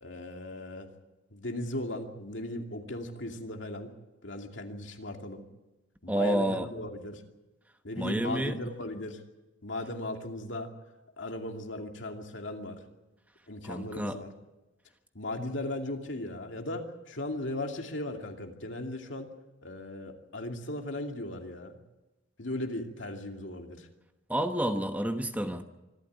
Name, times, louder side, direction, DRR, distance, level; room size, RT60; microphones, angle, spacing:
voice 1, 0.0-0.9 1.3-3.9 4.2-5.4 6.0-7.2 7.8-9.2 9.6-10.7 11.2-12.8 13.5-14.3 15.1-19.3 19.6-21.8 22.4-23.9, left 1 dB, 70° left, 3 dB, 2.6 m, -37 dB
voice 2, 6.1-6.7 8.0-8.6 13.6-14.2 24.3-25.6, right 1 dB, 10° right, 7 dB, 1.1 m, -29 dB
25.5 x 13.0 x 9.4 m, 1.0 s
head